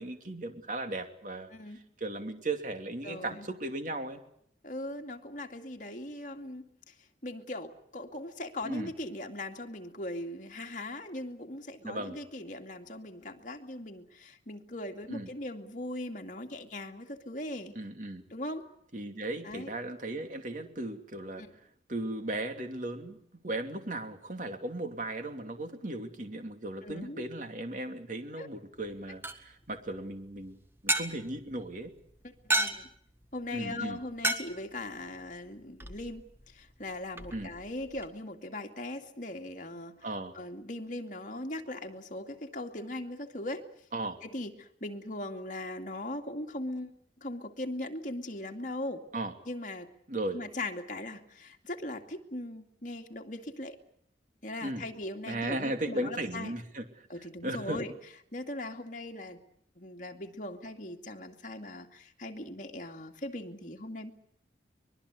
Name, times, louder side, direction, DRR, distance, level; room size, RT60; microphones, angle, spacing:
voice 1, 0.0-1.5 2.0-4.2 8.6-8.9 11.8-12.2 15.1-15.3 17.7-18.2 18.9-21.4 21.9-23.2 23.4-31.9 33.5-34.0 37.3-37.5 40.0-40.3 43.9-44.2 49.1-49.3 50.1-50.4 54.6-54.8 55.3-57.1 57.4-57.8, right 1 dB, 45° right, 6 dB, 2.9 m, -36 dB
voice 2, 1.5-1.8 3.0-3.5 4.6-6.9 7.2-17.8 18.3-18.6 19.4-19.7 21.4-21.5 26.8-27.2 28.4-28.5 32.2-32.9 33.3-40.1 40.3-43.7 44.2-49.0 49.5-49.9 50.3-53.8 54.4-56.5 57.1-57.9 58.3-59.4 59.8-64.1, left 1 dB, 45° left, 3 dB, 2.4 m, -39 dB
sound 1, 28.7-38.1, right 1 dB, 15° right, 1.7 m, -37 dB
24.5 x 22.0 x 8.3 m, 0.69 s
head